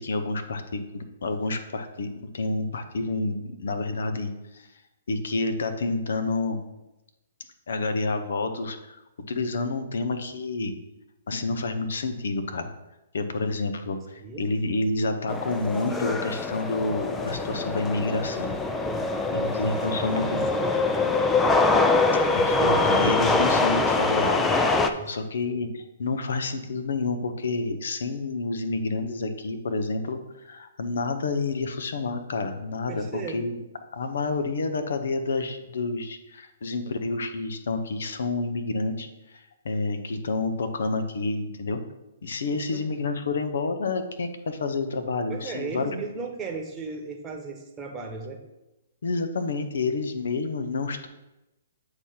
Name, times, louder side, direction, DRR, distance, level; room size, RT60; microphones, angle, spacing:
voice 1, 0.0-4.7 5.1-6.6 7.7-9.0 9.3-10.8 11.3-12.7 13.1-18.6 19.3-20.4 22.3-24.6 25.1-33.6 33.9-41.8 42.2-45.9 49.0-51.1, left 3 dB, 70° left, 8 dB, 0.8 m, -29 dB
sound 1, 15.3-24.9, left 3 dB, 10° left, 0.4 m, -24 dB
voice 2, 19.7-21.2 24.9-25.6 32.9-33.4 42.5-42.8 45.3-48.4, right 4 dB, 20° right, 2 dB, 1.1 m, -37 dB
8.0 x 2.9 x 5.7 m, 0.97 s
hypercardioid pair, 130°, 0 cm